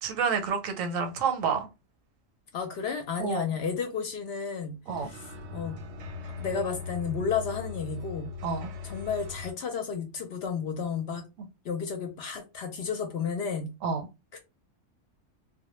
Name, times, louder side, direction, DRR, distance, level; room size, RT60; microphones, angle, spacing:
voice 1, 0.0-1.7 3.2-3.5 4.9-5.1 8.4-8.7 13.8-14.1, right 6 dB, 85° right, 1.0 m, -29 dB
voice 2, 2.5-5.8 6.4-8.3 8.8-11.2 11.6-13.7 14.3-14.4, left 6 dB, 65° left, 0.7 m, -32 dB
sound 1, 4.9-9.5, left 5 dB, 65° right, 0.8 m, -39 dB
2.1 x 2.1 x 3.0 m
omnidirectional pair, 1.4 m